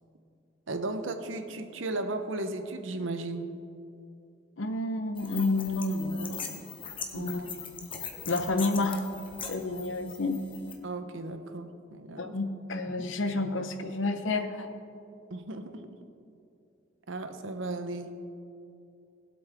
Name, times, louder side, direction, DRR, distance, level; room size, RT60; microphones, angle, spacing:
voice 1, 0.7-3.5 7.1-7.5 10.8-12.4 15.3-16.0 17.1-18.1, right 2 dB, 70° right, 8 dB, 0.9 m, -35 dB
voice 2, 4.6-6.4 7.1-7.5 8.3-9.1 9.5-10.4 12.1-14.7, left 2 dB, 70° left, 7 dB, 0.9 m, -30 dB
sound 1, 5.2-10.7, left 6 dB, 25° left, 0.9 m, -41 dB
20.5 x 7.9 x 3.6 m, 2.6 s
head